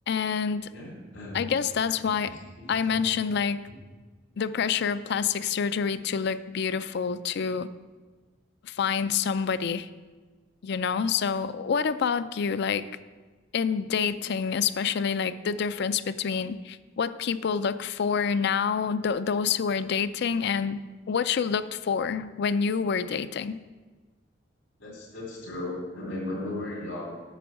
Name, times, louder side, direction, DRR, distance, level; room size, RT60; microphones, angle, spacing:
voice 1, 0.1-0.7 1.3-2.3 2.7-3.6 4.4-7.7 8.6-9.9 10.6-12.9 13.5-20.8 21.1-23.6, left 6 dB, 60° left, 14 dB, 0.4 m, -27 dB
voice 2, 0.7-1.5 2.2-3.0 24.8-27.2, left 1 dB, 80° left, -3 dB, 2.9 m, -36 dB
8.2 x 6.0 x 7.3 m, 1.3 s
head